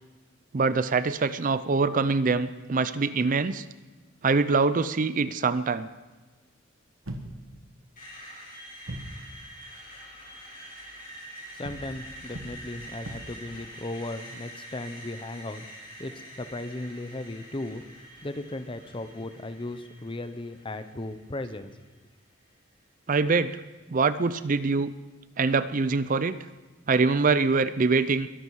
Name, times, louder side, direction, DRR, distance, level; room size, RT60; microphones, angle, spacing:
voice 1, 0.5-3.6 4.2-5.9 23.1-23.6 23.9-24.9 25.4-26.4 26.9-28.3, right 4 dB, 40° right, 14 dB, 0.5 m, -24 dB
sound 1, 7.1-7.7 8.9-9.3 11.6-13.5, right 1 dB, 75° right, 1.7 m, -40 dB
Screech, 8.0-21.9, equal, 40° left, 6.7 m, -46 dB
voice 2, 11.5-15.7 16.0-17.8 18.2-21.7, left 2 dB, 25° left, 11 dB, 0.8 m, -36 dB
22.5 x 11.0 x 4.8 m, 1.2 s
head